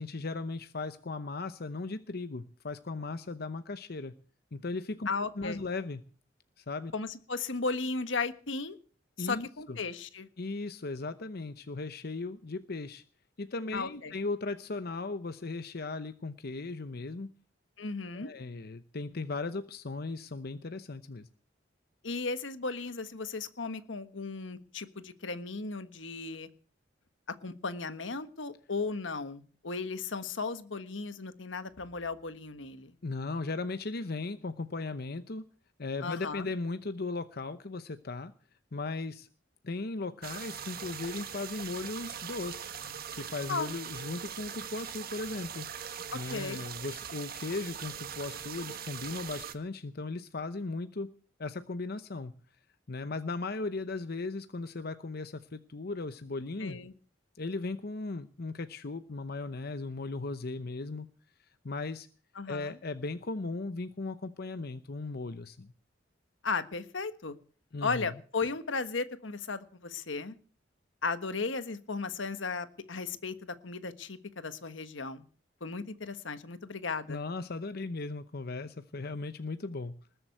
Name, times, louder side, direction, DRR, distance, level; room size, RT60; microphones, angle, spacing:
voice 1, 0.0-4.1 4.5-5.1 5.4-6.0 6.6-6.9 9.2-9.8 10.4-13.0 13.4-17.3 18.1-21.3 33.0-35.4 35.8-38.3 38.7-39.3 39.6-42.7 43.1-45.7 46.1-51.1 51.4-52.3 52.9-56.8 57.4-61.1 61.6-62.1 62.5-65.7 67.7-68.1 77.1-80.0, left 3 dB, 55° left, 10 dB, 0.8 m, -37 dB
voice 2, 5.0-5.6 6.9-8.8 9.2-10.3 13.7-14.1 17.8-18.3 22.0-26.5 27.3-32.9 36.0-36.5 43.5-43.7 46.1-46.6 56.6-56.9 62.3-62.8 66.4-67.3 67.8-70.3 71.0-75.2 75.6-77.2, left 4 dB, 80° left, 11 dB, 1.4 m, -35 dB
sound 1, 40.2-49.5, right 8 dB, 55° right, 1.5 m, -41 dB
20.0 x 7.8 x 7.9 m, 0.41 s
head